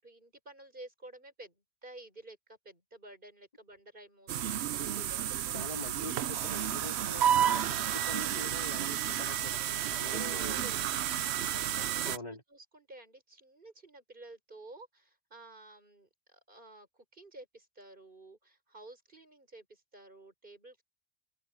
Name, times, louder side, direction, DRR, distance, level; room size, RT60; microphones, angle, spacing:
voice 1, 0.0-5.6 9.6-10.8 11.0-20.8, right 2 dB, 55° right, 5.6 m, -52 dB
sound 1, 4.3-12.2, right 10 dB, 85° right, 0.9 m, -31 dB
voice 2, 5.5-10.7 12.1-12.4, left 2 dB, 40° left, 3.1 m, -44 dB
open air
omnidirectional pair, 1.1 m